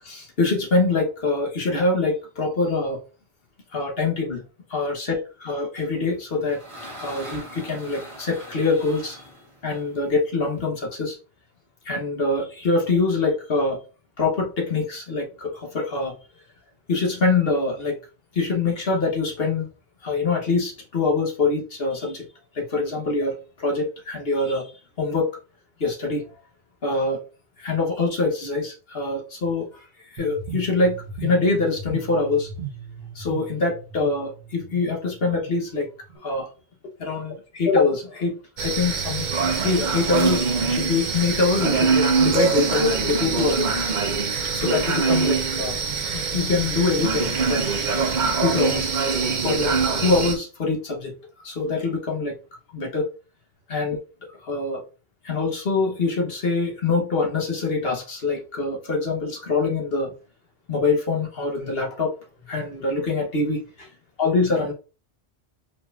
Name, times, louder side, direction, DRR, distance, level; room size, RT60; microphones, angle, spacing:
voice 1, 0.0-3.0 3.7-4.4 4.7-6.6 7.0-9.2 9.6-11.2 11.8-13.8 14.2-16.1 16.9-18.0 18.3-19.7 20.0-22.3 22.5-25.3 25.8-26.2 26.8-27.2 27.6-29.9 30.1-32.5 33.1-35.9 36.2-36.5 37.0-39.3 39.6-43.8 44.5-45.8 46.3-47.6 48.4-48.9 49.4-49.7 50.0-51.1 51.4-52.4 52.7-53.1 53.7-54.0 54.4-54.8 55.2-60.1 60.7-62.1 62.5-63.9 64.2-64.7, left 3 dB, 60° left, 1 dB, 1.3 m, -24 dB
sound 1, 6.0-10.7, equal, 25° right, 1.8 m, -42 dB
sound 2, 30.2-36.2, right 6 dB, 75° right, 1.3 m, -38 dB
sound 3, 38.6-50.3, right 5 dB, 45° right, 0.8 m, -23 dB
5.1 x 4.2 x 2.5 m, 0.33 s
omnidirectional pair, 1.1 m